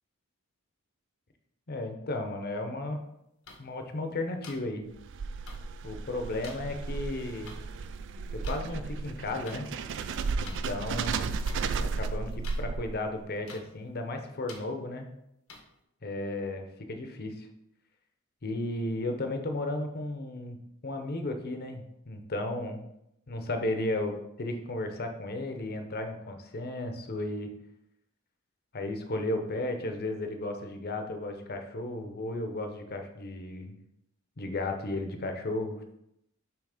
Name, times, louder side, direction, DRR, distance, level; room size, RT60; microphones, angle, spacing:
voice 1, 1.7-3.0 3.6-4.8 5.8-7.5 8.3-9.7 10.4-11.3 11.9-15.1 16.0-17.5 18.4-20.6 20.8-22.8 23.3-27.5 28.7-33.8 34.4-35.8, left 2 dB, 50° left, 5 dB, 0.8 m, -34 dB
sound 1, 3.5-3.6 4.4-4.6 5.5-5.6 6.4-6.5 7.5-7.6 8.4-8.6 9.4-9.6 10.4-10.6 11.4-11.6 12.4-12.6 13.5-13.6 14.5-14.6 15.5-15.6, left 4 dB, 85° left, 1.2 m, -45 dB
sound 2, 4.9-13.2, right 4 dB, 60° right, 0.3 m, -34 dB
7.1 x 3.1 x 5.0 m, 0.81 s
head